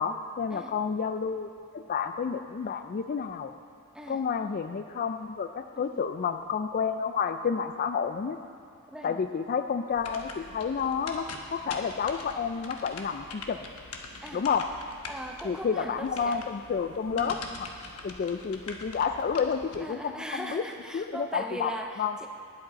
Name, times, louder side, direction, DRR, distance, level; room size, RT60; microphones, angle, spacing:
voice 1, 0.0-3.5 4.1-8.4 9.0-13.6 14.3-14.7 15.4-17.7 18.0-20.6 20.9-22.1, left 6 dB, 40° left, 8 dB, 0.3 m, -30 dB
voice 2, 8.9-9.2 14.2-14.5 15.1-16.4 17.1-17.6 19.8-22.3, right 1 dB, 5° right, 3 dB, 0.6 m, -39 dB
sound 1, 9.9-19.8, left 3 dB, 75° left, 1.0 m, -43 dB
18.5 x 8.0 x 4.0 m, 2.3 s
head